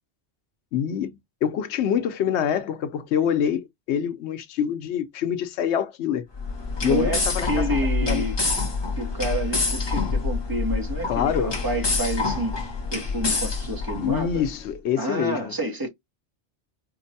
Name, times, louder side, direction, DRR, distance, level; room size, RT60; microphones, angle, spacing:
voice 1, 0.7-6.2 6.8-8.2 11.1-11.6 14.0-15.5, left 8 dB, 70° left, 0.9 m, -26 dB
sound 1, 6.3-14.5, left 4 dB, 25° left, 0.7 m, -27 dB
voice 2, 6.8-8.4 9.0-12.6 12.9-14.4 15.0-15.9, right 1 dB, 20° right, 0.8 m, -29 dB
4.5 x 2.1 x 2.6 m
omnidirectional pair, 1.2 m